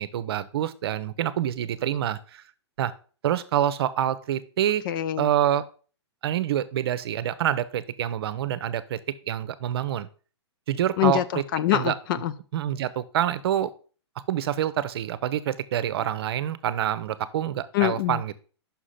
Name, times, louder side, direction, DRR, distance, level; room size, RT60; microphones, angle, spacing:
voice 1, 0.0-2.4 2.8-2.9 3.2-4.8 5.2-5.6 6.2-9.0 9.3-10.1 10.7-11.2 11.7-11.9 12.5-13.7 14.3-18.3, right 11 dB, 60° right, 15 dB, 0.7 m, -26 dB
voice 2, 4.8-5.3 11.0-12.3 17.7-18.2, left 13 dB, 50° left, 15 dB, 0.6 m, -24 dB
5.9 x 5.0 x 5.7 m, 0.39 s
hypercardioid pair, 135°, 15 cm